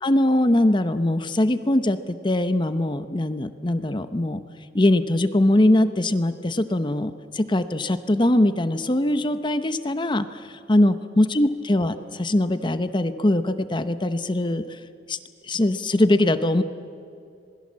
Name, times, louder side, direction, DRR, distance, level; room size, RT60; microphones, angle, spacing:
voice 1, 0.0-4.4 4.7-14.8 15.1-15.2 15.4-16.6, left 1 dB, 25° left, 11 dB, 0.9 m, -22 dB
27.0 x 21.0 x 7.5 m, 2.5 s
head